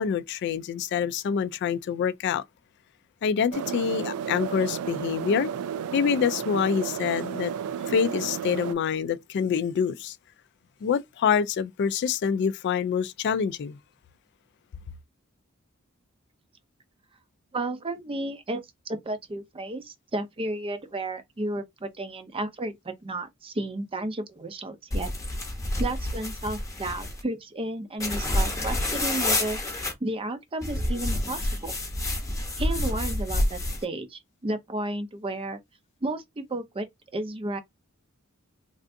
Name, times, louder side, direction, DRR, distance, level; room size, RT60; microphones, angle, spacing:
voice 1, 0.0-2.4 3.2-5.5 5.9-7.5 7.9-10.2 10.8-13.8, left 7 dB, 55° left, 0.3 m, -26 dB
sound 1, 3.5-8.7, right 8 dB, 90° right, 0.3 m, -32 dB
voice 2, 17.5-25.1 25.8-29.6 30.0-31.7 32.6-35.6 36.0-36.9 37.1-37.6, right 2 dB, 25° right, 0.5 m, -32 dB
sound 2, 24.9-27.2 28.0-29.9 30.6-33.8, left 1 dB, 15° left, 0.8 m, -28 dB
3.4 x 2.5 x 2.5 m
head